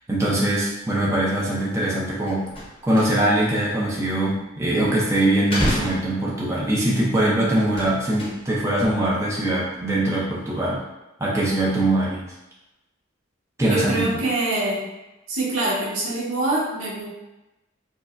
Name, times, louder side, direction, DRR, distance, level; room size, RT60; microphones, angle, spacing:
voice 1, 0.1-2.5 2.8-10.8 11.2-12.2 13.6-14.0, right 1 dB, 15° right, -6 dB, 0.5 m, -22 dB
sound 1, 1.7-1.9 2.1-3.5 3.8-4.9 5.4-6.8 7.5-8.8 9.0-9.5 9.8-10.0, equal, 25° left, 0.7 m, -30 dB
voice 2, 13.6-14.9 15.3-17.1, right 2 dB, 75° right, -6 dB, 1.0 m, -24 dB
4.6 x 2.1 x 2.5 m, 0.99 s
head